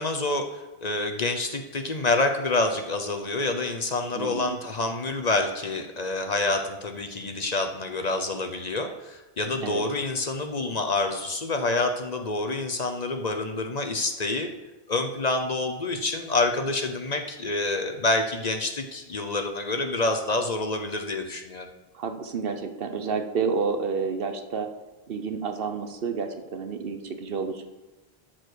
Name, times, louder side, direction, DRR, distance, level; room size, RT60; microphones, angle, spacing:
voice 1, 0.0-14.5 14.9-21.7, left 2 dB, 45° left, 6 dB, 0.8 m, -27 dB
voice 2, 4.2-4.6 9.6-9.8 21.9-24.7 25.1-27.6, right 5 dB, 65° right, 7 dB, 1.1 m, -30 dB
13.0 x 4.7 x 6.4 m, 1.1 s
omnidirectional pair, 1.1 m